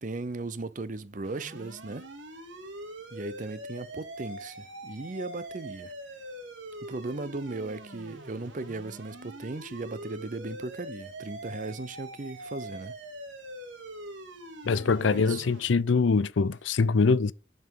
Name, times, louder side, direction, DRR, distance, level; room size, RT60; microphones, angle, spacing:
voice 1, 0.0-2.1 3.1-5.9 6.8-12.9 15.0-15.4, right 3 dB, 45° right, 0.7 m, -37 dB
sound 1, 1.2-15.7, right 1 dB, 85° right, 2.3 m, -43 dB
voice 2, 14.7-17.3, left 4 dB, 85° left, 0.5 m, -23 dB
7.6 x 5.9 x 6.8 m
head